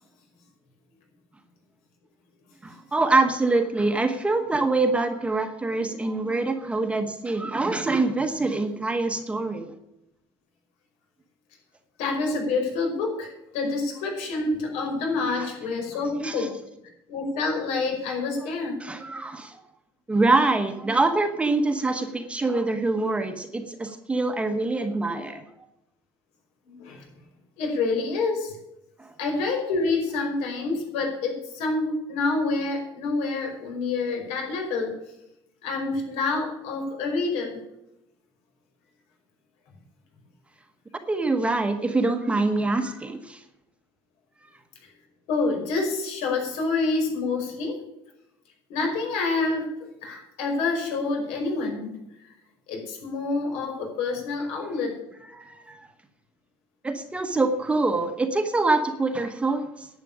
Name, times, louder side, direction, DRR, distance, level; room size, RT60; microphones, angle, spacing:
voice 1, 2.6-9.7 16.2-16.5 18.8-19.6 20.1-25.4 29.0-29.1 41.1-43.4 55.3-55.8 56.8-59.9, right 3 dB, 10° right, 7 dB, 1.1 m, -25 dB
voice 2, 12.0-16.5 17.1-18.8 26.7-27.1 27.6-28.6 29.2-34.9 35.6-37.6 45.3-47.8 48.7-49.7 50.0-52.3 52.7-55.0, left 3 dB, 80° left, 2 dB, 5.2 m, -27 dB
11.0 x 8.3 x 8.8 m, 0.85 s
cardioid pair, 155°, 11 cm